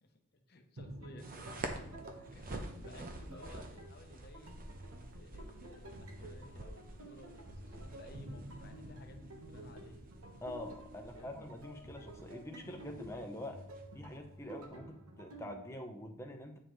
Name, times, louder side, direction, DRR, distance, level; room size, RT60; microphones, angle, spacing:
voice 1, 0.0-1.7 2.3-4.6 5.2-10.1 11.0-11.4 14.4-14.6, left 1 dB, 45° left, 5 dB, 0.9 m, -57 dB
sound 1, 0.8-15.5, right 1 dB, 80° right, 1.3 m, -51 dB
sound 2, 1.2-14.7, right 2 dB, 40° right, 0.9 m, -49 dB
voice 2, 10.4-13.6 13.9-16.6, left 1 dB, 10° left, 2 dB, 0.9 m, -45 dB
8.9 x 6.9 x 3.2 m, 0.78 s
head